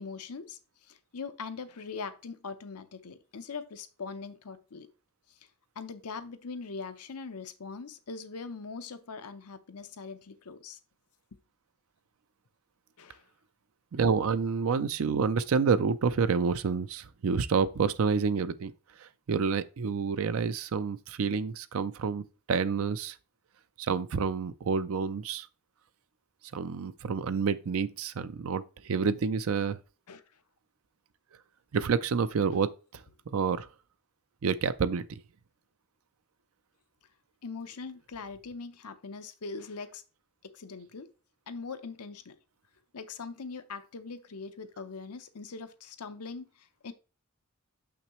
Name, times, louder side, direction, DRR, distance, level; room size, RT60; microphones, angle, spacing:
voice 1, 0.0-4.9 5.3-5.4 5.8-10.8 13.0-13.2 30.1-30.2 37.4-40.0 40.4-41.1 41.5-42.4 42.9-46.9, left 4 dB, 85° left, 0.8 m, -41 dB
voice 2, 13.9-18.7 19.0-23.2 23.8-25.5 26.5-29.8 31.7-33.0 33.3-33.7 34.4-35.2, right 5 dB, 65° right, 0.4 m, -28 dB
6.7 x 5.9 x 3.1 m
head